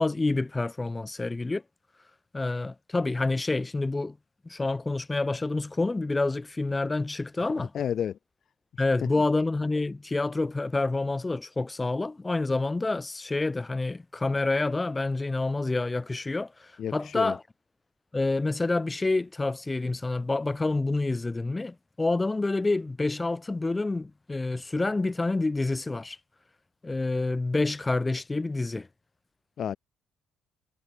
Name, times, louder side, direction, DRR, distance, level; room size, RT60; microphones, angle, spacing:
voice 1, 0.0-1.6 2.3-4.2 4.4-7.7 8.8-17.4 18.1-26.2 26.8-28.9, left 2 dB, 20° left, 0.3 m, -28 dB
voice 2, 7.5-8.2 16.8-17.4 29.6-29.8, left 9 dB, 55° left, 0.6 m, -31 dB
hypercardioid pair, 55°, 0 cm